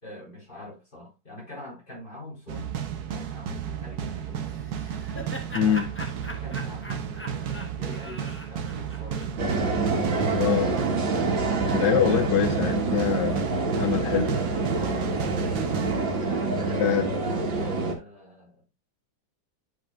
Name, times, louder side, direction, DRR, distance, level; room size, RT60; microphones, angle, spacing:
voice 1, 0.0-4.7 5.5-5.7 6.2-9.5 11.2-11.9 14.7-15.1 16.2-18.6, left 1 dB, 25° left, 4.5 m, -44 dB
sound 1, 2.5-16.7, right 8 dB, 60° right, 1.2 m, -33 dB
Laughter, 4.5-9.7, equal, 10° left, 0.8 m, -41 dB
voice 2, 5.5-5.9 10.4-10.8 11.7-13.4 13.8-14.4 16.8-17.1, left 10 dB, 75° left, 1.3 m, -24 dB
sound 2, 9.4-17.9, right 3 dB, 80° right, 2.3 m, -26 dB
10.5 x 5.3 x 2.4 m
omnidirectional pair, 2.0 m